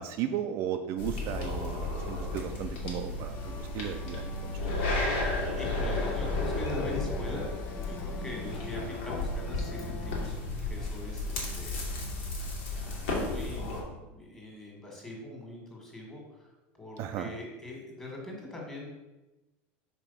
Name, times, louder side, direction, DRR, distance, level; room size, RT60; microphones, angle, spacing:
voice 1, 0.0-4.8 17.0-17.3, right 10 dB, 50° right, 6 dB, 0.5 m, -35 dB
sound 1, 1.0-13.8, left 2 dB, 85° left, 2.2 m, -33 dB
sound 2, 3.3-10.3, left 6 dB, 40° left, 0.6 m, -43 dB
voice 2, 5.6-11.9 12.2-12.5 12.7-16.5 16.8-18.9, left 2 dB, 10° left, -1 dB, 1.8 m, -42 dB
5.0 x 4.4 x 5.6 m, 1.1 s
supercardioid pair, 145°, 6 cm